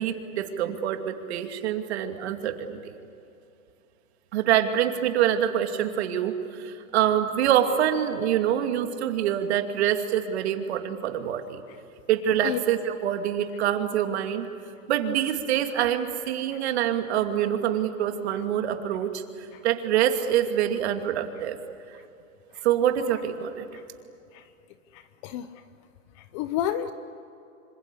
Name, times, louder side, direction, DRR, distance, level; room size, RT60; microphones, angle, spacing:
voice 1, 0.0-2.8 4.3-6.3 6.6-11.6 12.1-14.5 14.9-19.2 19.6-21.6 22.6-23.7, right 10 dB, 50° right, 6 dB, 2.5 m, -25 dB
voice 2, 24.9-25.5 26.2-26.9, left 11 dB, 20° left, 12 dB, 0.6 m, -30 dB
26.5 x 25.5 x 8.3 m, 2.7 s
hypercardioid pair, 150°, 41 cm